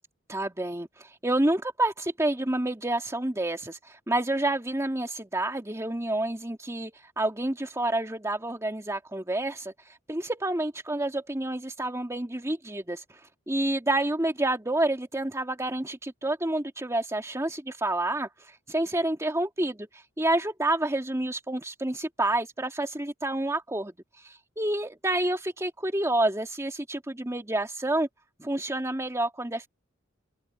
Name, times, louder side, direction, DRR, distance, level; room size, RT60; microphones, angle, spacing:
voice 1, 0.3-9.7 10.1-13.0 13.5-19.9 20.2-23.9 24.2-28.1 28.4-29.7, right 1 dB, 15° right, 2.0 m, -29 dB
head